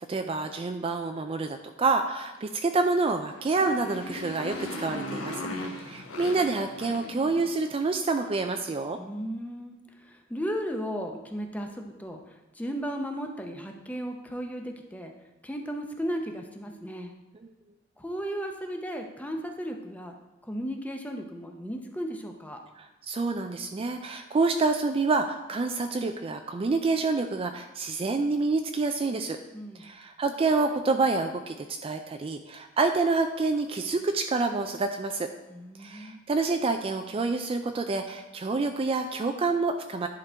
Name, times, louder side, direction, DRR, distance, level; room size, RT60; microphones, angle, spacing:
voice 1, 0.1-5.5 5.9-9.0 22.8-29.4 29.8-35.3 35.8-40.1, right 3 dB, 30° right, 6 dB, 0.3 m, -27 dB
Motorcycle, 3.2-7.8, left 1 dB, 85° left, 1.1 m, -38 dB
voice 2, 5.4-5.8 9.0-12.2 12.5-15.1 15.4-17.1 18.0-20.1 20.4-22.6 29.5-29.9 35.5-36.2, equal, 10° left, 3 dB, 0.7 m, -35 dB
10.5 x 3.8 x 4.4 m, 1.1 s
head